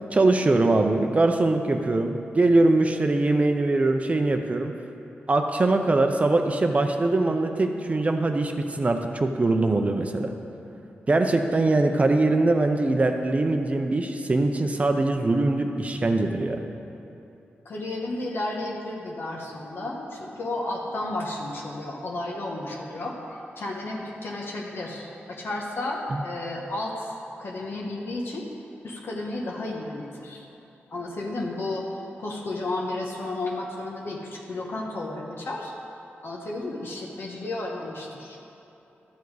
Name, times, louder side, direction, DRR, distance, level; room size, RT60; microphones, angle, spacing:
voice 1, 0.1-4.7 5.3-10.3 11.1-16.6 26.1-26.2, right 2 dB, 35° right, 5 dB, 0.6 m, -22 dB
voice 2, 17.6-27.1 27.4-28.5 28.8-30.5 30.9-31.8 32.2-35.7 36.2-38.4, left 2 dB, 65° left, -2 dB, 1.2 m, -32 dB
12.5 x 7.0 x 4.8 m, 3.0 s
wide cardioid pair, 100°, 4 cm